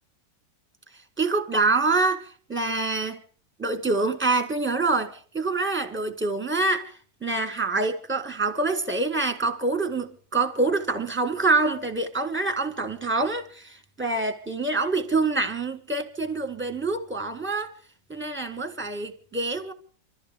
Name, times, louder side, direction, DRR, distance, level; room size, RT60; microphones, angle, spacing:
voice 1, 1.2-3.2 3.6-6.9 7.2-17.7 18.1-19.7, right 3 dB, 5° right, 1.3 m, -26 dB
25.5 x 14.0 x 3.6 m
omnidirectional pair, 1.9 m